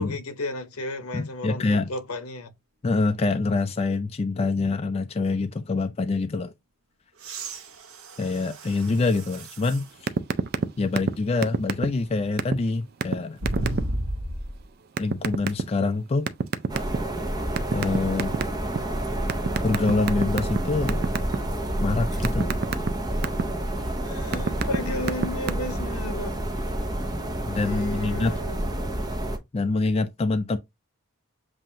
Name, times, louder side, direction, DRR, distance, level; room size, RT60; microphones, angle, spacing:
voice 1, 0.0-2.5 22.1-22.3 24.0-26.4 27.6-28.6, left 2 dB, 80° left, 0.9 m, -34 dB
voice 2, 1.1-1.9 2.8-6.5 8.2-9.9 10.8-13.4 15.0-16.3 17.7-18.4 19.6-21.0 21.8-22.5 27.4-28.4 29.5-30.6, left 3 dB, 25° left, 0.3 m, -25 dB
sound 1, 7.2-9.9 10.6-10.7 13.4-14.6 16.5-16.6, right 1 dB, 75° right, 1.0 m, -33 dB
sound 2, 10.1-10.7 11.0-11.1 11.4-12.1 12.4-12.6 13.0-13.1 13.5-13.8 15.0-15.6 16.3-17.1 17.6-18.8 19.3-20.6 20.9-21.4 21.8-23.4 24.0-24.8 25.0-25.5, right 4 dB, 45° right, 0.4 m, -24 dB
sound 3, 16.7-29.4, right 1 dB, 20° right, 0.8 m, -29 dB
7.5 x 2.5 x 2.7 m
head